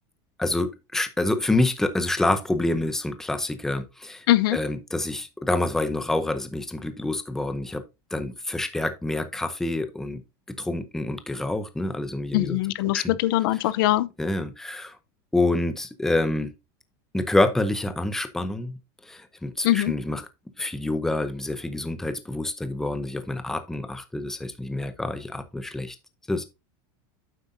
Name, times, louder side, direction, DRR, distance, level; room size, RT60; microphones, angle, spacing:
voice 1, 0.4-4.3 4.5-7.8 8.1-10.2 10.6-12.6 12.8-13.2 14.2-15.0 15.3-16.5 17.1-18.8 19.0-20.2 20.6-26.0 26.3-26.5, left 2 dB, 5° left, 0.7 m, -27 dB
voice 2, 4.3-4.6 12.3-14.1 19.6-19.9, left 15 dB, 70° left, 0.7 m, -22 dB
9.2 x 7.7 x 2.6 m
supercardioid pair, 170°, 12 cm